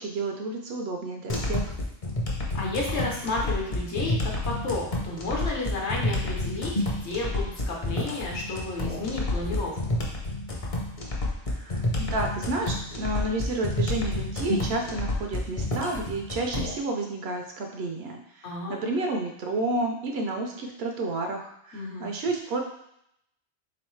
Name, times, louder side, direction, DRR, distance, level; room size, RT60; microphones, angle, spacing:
voice 1, 0.0-1.7 11.5-22.6, right 2 dB, 65° right, 2 dB, 0.7 m, -31 dB
sound 1, 1.3-16.7, left 1 dB, 40° left, 0.6 m, -29 dB
voice 2, 2.5-6.7 7.0-10.0 18.4-18.8 21.7-22.1, left 2 dB, 70° left, -2 dB, 1.2 m, -32 dB
3.8 x 3.1 x 3.1 m, 0.76 s
omnidirectional pair, 1.2 m